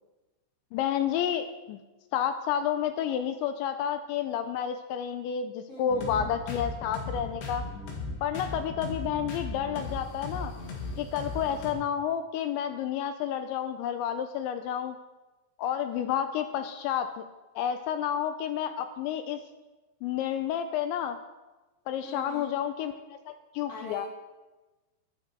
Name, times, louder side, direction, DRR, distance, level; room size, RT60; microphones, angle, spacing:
voice 1, 0.7-1.8 2.1-7.6 8.2-10.5 11.0-15.0 15.6-17.2 17.6-19.4 20.0-21.2 21.9-22.9 23.3-24.1, left 9 dB, 85° left, 8 dB, 2.7 m, -30 dB
voice 2, 5.7-6.3 22.0-22.6 23.7-24.1, left 2 dB, 25° left, -4 dB, 4.4 m, -42 dB
sound 1, 5.9-11.7, left 3 dB, 65° left, 3.8 m, -37 dB
14.5 x 11.5 x 4.5 m, 1.1 s
omnidirectional pair, 5.6 m